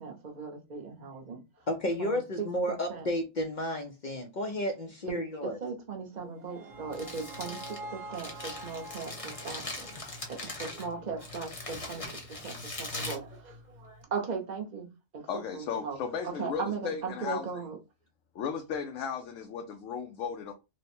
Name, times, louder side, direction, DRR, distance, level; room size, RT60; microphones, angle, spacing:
voice 1, 0.0-1.4 2.0-3.1 5.1-14.9 15.1-15.3 15.5-16.0 16.2-17.8, right 5 dB, 40° right, 0.8 m, -38 dB
voice 2, 1.7-5.6, left 1 dB, 55° left, 0.5 m, -32 dB
sound 1, 6.1-11.3, right 2 dB, 65° right, 1.0 m, -47 dB
Crumpling crinkling, 6.7-14.0, left 2 dB, 30° left, 0.8 m, -41 dB
voice 3, 15.3-17.5 18.3-20.5, left 6 dB, 75° left, 0.9 m, -35 dB
3.2 x 2.1 x 4.2 m
omnidirectional pair, 1.4 m